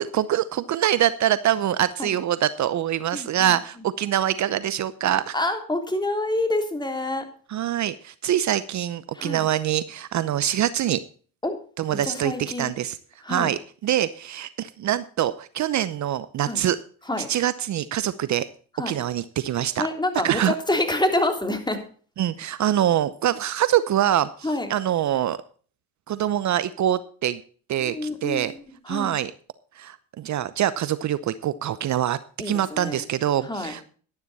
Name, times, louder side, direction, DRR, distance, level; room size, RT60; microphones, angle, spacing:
voice 1, 0.0-5.3 7.5-11.0 11.8-13.0 13.3-16.8 17.3-18.5 18.9-19.9 20.2-20.5 22.2-25.4 26.1-27.4 27.7-28.5 28.9-29.3 29.8-32.2 32.4-33.8, right 11 dB, 50° right, 15 dB, 0.8 m, -24 dB
voice 2, 3.1-3.5 5.3-7.2 9.1-9.4 11.4-11.6 11.9-12.7 13.2-13.5 16.4-16.6 17.1-17.3 18.8-19.0 19.8-21.8 24.4-24.7 27.9-28.5 28.9-29.1 32.4-33.0 33.5-33.8, left 1 dB, 10° left, 5 dB, 3.3 m, -27 dB
12.5 x 10.5 x 4.1 m, 0.42 s
supercardioid pair, 75°, 36 cm